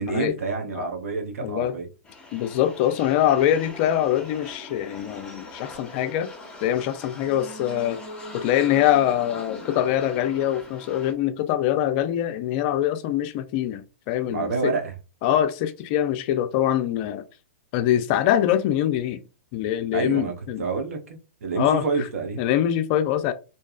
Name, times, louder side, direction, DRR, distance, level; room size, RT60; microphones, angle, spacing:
voice 1, 0.0-1.9 14.3-14.9 19.9-21.0 21.4-22.4, right 4 dB, 75° right, 0.7 m, -28 dB
voice 2, 1.4-1.8 2.3-6.3 6.6-8.0 8.3-14.7 15.2-17.2 17.7-19.2 19.5-20.7 21.6-21.9 22.4-23.3, left 11 dB, 40° left, 0.4 m, -23 dB
sound 1, 2.0-11.1, left 2 dB, 10° left, 1.0 m, -42 dB
sound 2, 7.1-10.8 11.1-11.2, right 1 dB, 25° right, 0.9 m, -44 dB
2.7 x 2.2 x 2.3 m
hypercardioid pair, 125°, 8 cm